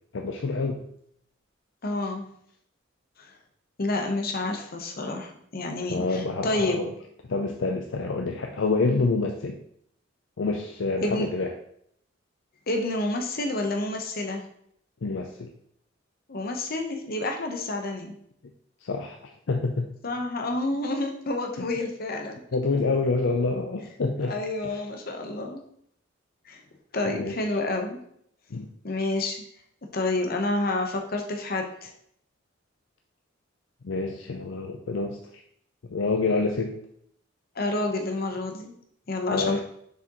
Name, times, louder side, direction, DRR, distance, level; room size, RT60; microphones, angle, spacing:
voice 1, 0.1-0.8 5.9-6.9 7.3-9.6 10.4-11.5 15.0-15.5 18.8-19.2 19.5-19.9 22.5-24.4 24.6-24.8 27.1-27.4 28.5-28.7 33.8-35.2 35.9-36.8 39.3-39.6, left 3 dB, 70° left, 3 dB, 0.5 m, -27 dB
voice 2, 1.8-2.3 3.2-3.3 3.8-6.8 11.0-11.3 12.7-14.4 16.3-18.2 20.0-22.4 24.3-25.6 26.5-26.6 26.9-28.0 28.8-29.4 29.9-31.9 37.5-38.7 39.1-39.6, left 2 dB, 50° left, 3 dB, 0.9 m, -29 dB
6.6 x 4.9 x 3.0 m, 0.69 s
head